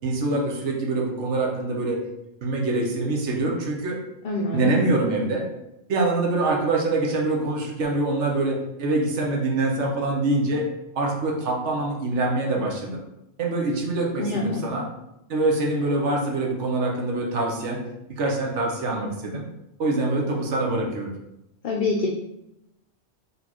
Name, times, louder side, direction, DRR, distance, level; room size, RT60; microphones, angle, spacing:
voice 1, 0.0-2.0 2.4-4.0 4.5-5.5 5.9-10.7 10.9-13.0 13.4-14.9 15.3-17.8 18.1-19.4 19.8-21.1, right 2 dB, 70° right, 0 dB, 1.1 m, -24 dB
voice 2, 4.2-4.8 14.2-14.7 21.6-22.1, left 3 dB, 55° left, 0 dB, 0.6 m, -25 dB
4.2 x 3.4 x 2.9 m, 0.85 s
omnidirectional pair, 1.3 m